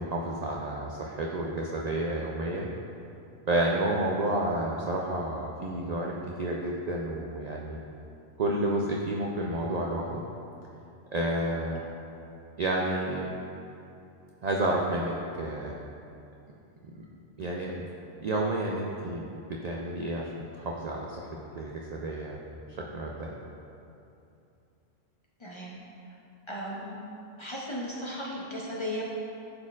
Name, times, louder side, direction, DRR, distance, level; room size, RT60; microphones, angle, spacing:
voice 1, 0.0-2.7 3.5-7.8 8.4-10.2 11.1-11.8 12.6-13.3 14.4-15.8 17.4-17.8 18.2-19.2 19.6-22.4 22.7-23.3, right 1 dB, 60° right, -2 dB, 0.4 m, -30 dB
voice 2, 25.4-25.8 26.5-27.0 27.4-29.0, equal, 30° left, -5 dB, 0.6 m, -36 dB
11.0 x 4.3 x 2.4 m, 2.7 s
omnidirectional pair, 1.2 m